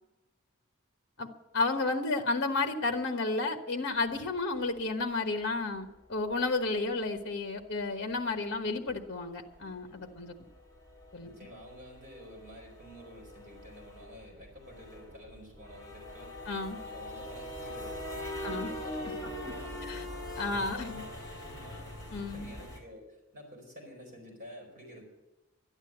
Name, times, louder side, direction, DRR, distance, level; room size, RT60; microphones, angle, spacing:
voice 1, 1.5-10.3 11.1-11.3 16.5-16.8 18.4-18.7 19.8-20.0 20.4-21.0 22.1-22.5, left 3 dB, 50° left, 5 dB, 1.2 m, -32 dB
sound 1, 6.3-6.4 8.1-8.3 8.7-8.8 9.0-9.2 9.6-9.7 10.0-22.8, left 1 dB, 15° left, 4.1 m, -42 dB
voice 2, 11.2-16.3 16.8-21.9 22.3-25.0, equal, 40° right, -1 dB, 4.8 m, -50 dB
12.5 x 11.5 x 7.9 m, 1.0 s
head